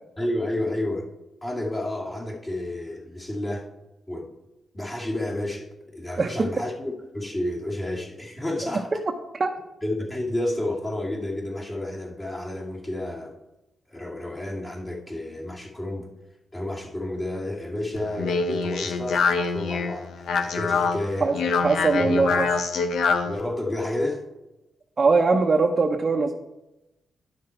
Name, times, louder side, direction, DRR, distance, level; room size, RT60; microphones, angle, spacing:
voice 1, 0.2-1.1 1.4-3.7 4.1-4.3 4.7-8.9 9.8-13.4 13.9-16.1 16.5-19.2 19.5-21.3 22.0-22.4 23.2-24.2, left 1 dB, 25° left, -2 dB, 2.3 m, -30 dB
Speech, 18.0-23.4, left 5 dB, 85° left, 0.8 m, -25 dB
voice 2, 21.6-22.5 25.0-26.3, right 4 dB, 40° right, 2 dB, 0.8 m, -21 dB
10.5 x 5.9 x 4.4 m, 0.96 s
cardioid pair, 85°, 0 cm